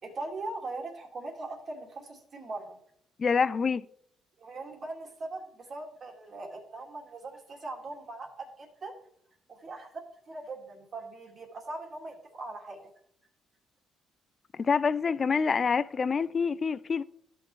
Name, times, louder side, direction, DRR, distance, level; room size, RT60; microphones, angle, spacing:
voice 1, 0.0-2.8 4.4-9.0 9.5-12.8, right 2 dB, 40° right, 2.1 m, -40 dB
voice 2, 3.2-3.9 14.5-17.0, left 5 dB, 35° left, 0.3 m, -26 dB
13.5 x 6.3 x 3.1 m
cardioid pair, 125°, 0 cm